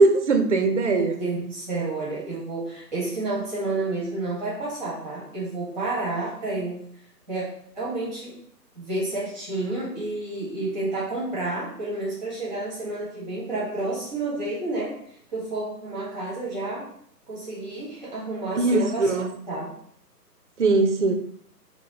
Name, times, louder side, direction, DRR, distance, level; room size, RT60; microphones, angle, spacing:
voice 1, 0.0-1.2 18.6-19.3 20.6-21.1, right 3 dB, 50° right, 6 dB, 0.5 m, -20 dB
voice 2, 0.9-6.8 7.3-7.4 7.7-8.4 8.7-14.9 15.3-16.8 17.3-19.1 19.5-19.7, right 2 dB, ahead, -7 dB, 0.9 m, -30 dB
5.0 x 2.2 x 4.0 m, 0.65 s
hypercardioid pair, 155°, 49 cm